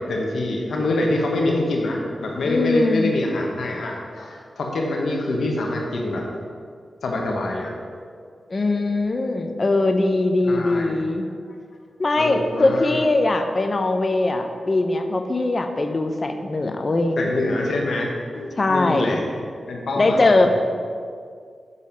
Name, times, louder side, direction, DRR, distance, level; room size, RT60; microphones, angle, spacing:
voice 1, 0.0-6.3 7.0-7.7 8.7-8.8 10.4-10.9 12.2-13.0 17.2-19.2 19.7-20.5, left 2 dB, 80° left, 0 dB, 1.0 m, -25 dB
voice 2, 2.4-3.1 8.5-11.2 12.0-17.2 18.6-19.2 20.0-20.5, left 2 dB, 45° left, 6 dB, 0.7 m, -21 dB
7.3 x 4.1 x 5.0 m, 2.1 s
cardioid pair, 50°, 0 cm